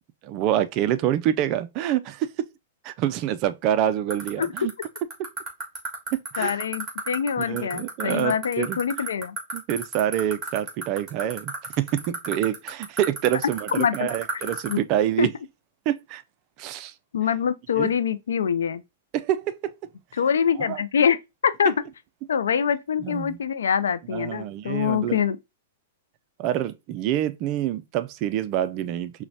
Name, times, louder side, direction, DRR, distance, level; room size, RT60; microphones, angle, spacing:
voice 1, 0.2-2.3 2.8-4.7 6.3-6.6 7.4-8.8 9.5-15.3 15.9-16.2 16.6-16.9 17.8-17.9 19.1-19.6 20.6-20.8 23.0-23.4 24.1-25.2 26.4-29.2, right 11 dB, 40° right, 0.3 m, -26 dB
sound 1, 4.1-14.7, right 4 dB, 15° right, 1.5 m, -31 dB
voice 2, 6.4-9.4 13.8-14.1 14.3-14.8 15.2-15.3 17.1-18.8 20.2-21.2 21.4-21.7 22.3-25.4, left 7 dB, 90° left, 0.3 m, -24 dB
5.7 x 2.1 x 2.7 m
hypercardioid pair, 140°, 0 cm